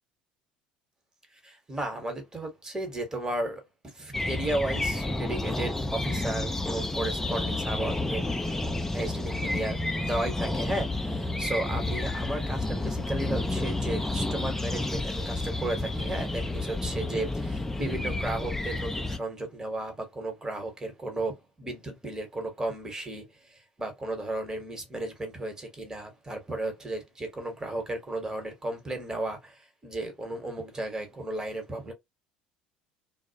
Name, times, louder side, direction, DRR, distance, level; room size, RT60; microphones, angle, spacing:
voice 1, 1.4-8.2 8.9-31.9, right 2 dB, 15° right, 1.1 m, -34 dB
sound 1, 4.1-19.2, left 2 dB, 10° left, 0.4 m, -30 dB
2.3 x 2.0 x 2.7 m
figure-of-eight pair, 65°, 4 cm